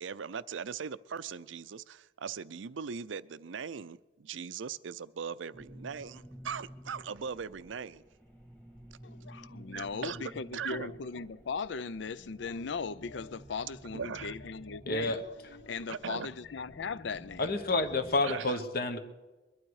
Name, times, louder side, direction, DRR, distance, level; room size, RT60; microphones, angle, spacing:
voice 1, 0.0-8.0 9.7-10.9 13.9-14.3 15.9-16.3 18.2-18.6, right 6 dB, 90° right, 0.5 m, -39 dB
sound 1, 5.5-18.2, equal, 10° left, 1.7 m, -52 dB
voice 2, 9.0-17.5, left 5 dB, 70° left, 0.5 m, -38 dB
voice 3, 14.9-15.2 17.4-19.0, left 2 dB, 55° left, 1.2 m, -29 dB
22.0 x 12.0 x 4.8 m
head